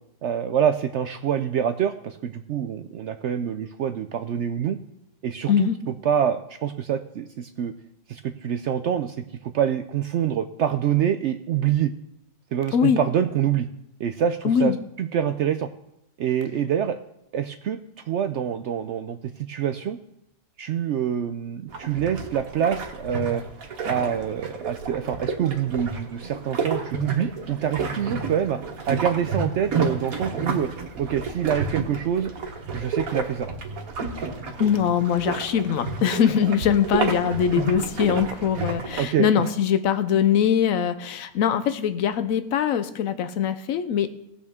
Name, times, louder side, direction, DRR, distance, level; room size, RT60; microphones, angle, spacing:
voice 1, 0.2-4.8 5.2-5.7 6.0-7.7 8.1-9.2 9.4-11.9 12.5-13.7 14.0-15.7 16.2-17.0 17.3-20.0 20.6-23.4 23.9-28.6 28.9-30.7 31.0-32.3 32.7-33.5 39.0-39.3, right 9 dB, 65° right, 8 dB, 0.8 m, -26 dB
voice 2, 14.4-14.8 34.6-44.1, left 8 dB, 80° left, 11 dB, 1.1 m, -22 dB
sound 1, 21.7-39.0, right 4 dB, 85° right, 1.7 m, -31 dB
18.0 x 7.0 x 3.6 m, 0.81 s
omnidirectional pair, 1.4 m